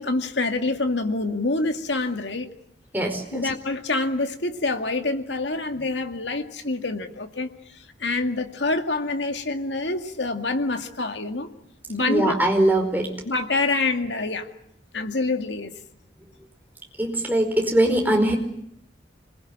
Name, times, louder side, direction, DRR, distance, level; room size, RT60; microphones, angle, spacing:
voice 1, 0.0-2.5 3.3-7.5 8.0-11.5 11.9-12.3 13.2-14.5 14.9-15.7, left 2 dB, 85° left, 6 dB, 2.1 m, -26 dB
voice 2, 2.9-3.5 12.0-13.1 17.0-18.4, right 1 dB, 10° right, 2 dB, 4.8 m, -21 dB
26.0 x 21.5 x 8.7 m, 0.72 s
head